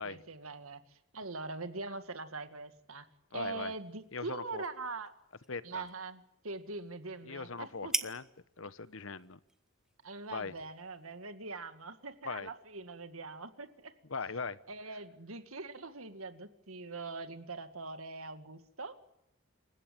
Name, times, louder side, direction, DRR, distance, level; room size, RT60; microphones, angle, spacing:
voice 1, 0.0-3.1 3.3-5.1 5.6-7.9 10.0-13.9 14.7-19.0, right 3 dB, 90° right, 9 dB, 2.1 m, -43 dB
voice 2, 3.3-3.7 4.1-4.7 5.5-5.8 7.2-8.2 8.6-9.4 10.3-10.5 12.2-12.5 14.1-14.6, left 4 dB, 70° left, 15 dB, 1.0 m, -40 dB
sound 1, 3.6-11.3, right 1 dB, 5° right, 1.1 m, -45 dB
27.5 x 15.5 x 8.8 m, 0.84 s
head